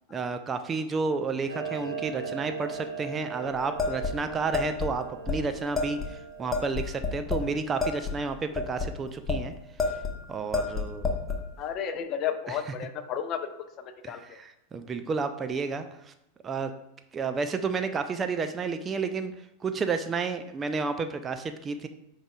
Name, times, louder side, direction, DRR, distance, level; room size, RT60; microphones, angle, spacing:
voice 1, 0.1-9.5 9.8-10.0 10.3-11.1 12.5-12.6 14.0-16.1 16.4-16.7 17.1-21.9, right 4 dB, 20° right, 8 dB, 0.4 m, -31 dB
Clock, 1.5-6.5, right 5 dB, 60° right, 2.3 m, -38 dB
sound 1, 3.8-4.9 5.3-5.4 5.7-6.1 6.5-7.5 7.8-9.4 9.8-10.2 10.5-11.4, left 4 dB, 15° left, 1.1 m, -29 dB
voice 2, 11.6-13.4 13.8-14.4, left 8 dB, 35° left, 8 dB, 0.7 m, -32 dB
8.7 x 4.9 x 2.3 m, 0.84 s
figure-of-eight pair, 90°, 0 cm